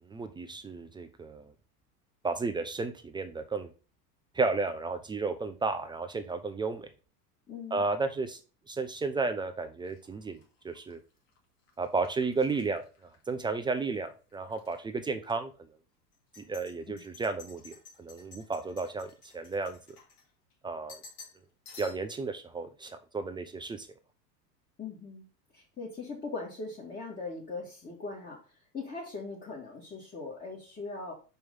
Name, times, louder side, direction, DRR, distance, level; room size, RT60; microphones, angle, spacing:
voice 1, 0.1-1.5 2.2-3.7 4.3-6.9 7.7-8.4 8.7-11.0 11.8-12.8 13.3-15.5 16.4-19.8 20.6-21.0 21.8-23.9, right 3 dB, 10° right, 8 dB, 0.4 m, -33 dB
voice 2, 7.5-7.8 16.9-17.0 24.8-25.2 25.5-28.4 28.7-31.1, left 3 dB, 20° left, -4 dB, 2.2 m, -40 dB
sound 1, 9.8-13.8 14.1-14.8 15.2-15.3 16.1-20.5 20.9-21.4 21.7-22.2, left 4 dB, 65° left, 2.6 m, -54 dB
5.4 x 4.5 x 5.4 m, 0.35 s
hypercardioid pair, 95°, 49 cm